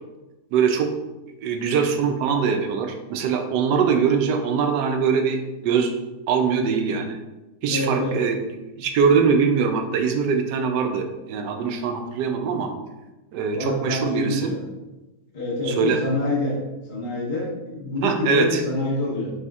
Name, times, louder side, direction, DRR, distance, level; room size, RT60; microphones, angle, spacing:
voice 1, 0.5-0.9 1.4-5.9 6.3-7.2 7.6-8.4 8.8-12.7 13.3-14.5 15.7-16.0 18.0-18.6, right 6 dB, 85° right, 4 dB, 1.2 m, -22 dB
voice 2, 7.7-8.2 13.5-14.7 15.3-16.6 16.9-19.3, left 2 dB, 30° left, -8 dB, 1.4 m, -26 dB
4.8 x 4.2 x 2.4 m, 1.1 s
omnidirectional pair, 1.8 m